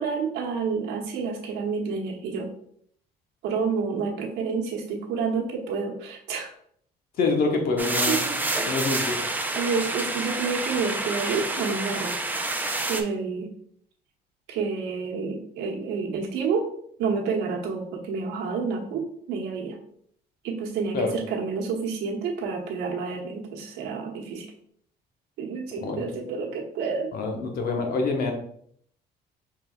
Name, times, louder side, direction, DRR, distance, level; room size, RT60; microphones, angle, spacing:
voice 1, 0.0-2.5 3.4-6.5 8.1-8.2 9.5-12.2 12.8-13.5 14.5-16.7 17.0-19.8 20.4-24.5 25.4-27.1, right 5 dB, 85° right, 0 dB, 1.1 m, -29 dB
voice 2, 7.2-8.2 8.6-9.2 20.9-21.1 25.8-26.0 27.1-28.3, left 3 dB, 65° left, 2 dB, 1.0 m, -26 dB
sound 1, 7.8-13.0, right 2 dB, 10° right, 0.5 m, -28 dB
4.9 x 3.6 x 2.3 m, 0.64 s
cardioid pair, 110°, 17 cm